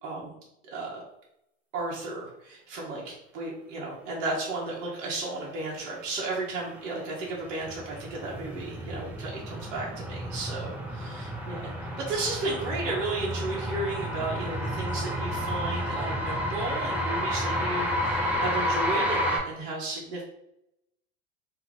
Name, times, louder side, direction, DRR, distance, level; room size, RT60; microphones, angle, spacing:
voice 1, 0.0-0.3 0.7-1.0 1.7-11.7 12.0-20.2, right 2 dB, 65° right, -4 dB, 1.0 m, -34 dB
sound 1, 6.6-19.4, equal, 5° right, 0.7 m, -31 dB
2.8 x 2.4 x 3.2 m, 0.82 s
hypercardioid pair, 100°, 37 cm